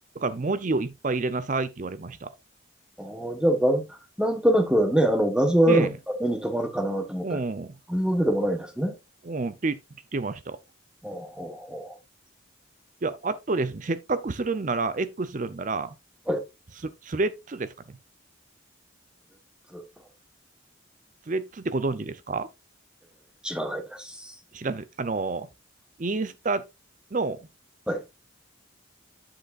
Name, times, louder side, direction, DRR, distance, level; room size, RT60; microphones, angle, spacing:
voice 1, 0.2-2.3 5.7-5.9 7.2-7.8 9.2-9.8 10.1-10.6 13.0-15.9 16.8-18.0 21.3-22.5 24.5-25.5 26.0-26.6 27.1-27.4, right 3 dB, 40° right, 0.5 m, -29 dB
voice 2, 3.0-3.8 4.2-5.9 6.2-7.4 7.9-8.9 11.0-11.9 16.3-16.4 19.7-19.8 23.4-24.3 27.9-28.0, right 1 dB, 5° right, 1.2 m, -24 dB
8.8 x 7.9 x 2.5 m
head